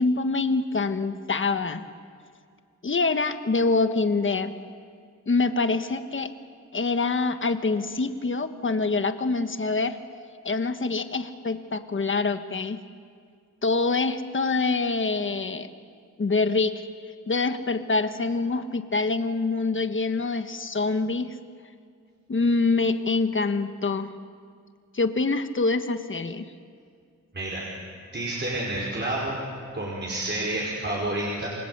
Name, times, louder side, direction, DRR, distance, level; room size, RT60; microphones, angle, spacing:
voice 1, 0.0-1.8 2.8-4.5 5.3-6.3 6.7-10.0 10.4-12.8 13.6-15.7 16.2-16.9 17.3-21.4 22.3-24.1 24.9-26.5, left 3 dB, 40° left, 9 dB, 1.5 m, -25 dB
voice 2, 27.3-27.7 28.1-29.4 29.7-31.5, right 1 dB, 35° right, -4 dB, 5.1 m, -29 dB
29.0 x 24.5 x 8.2 m, 2.2 s
wide cardioid pair, 115°, 32 cm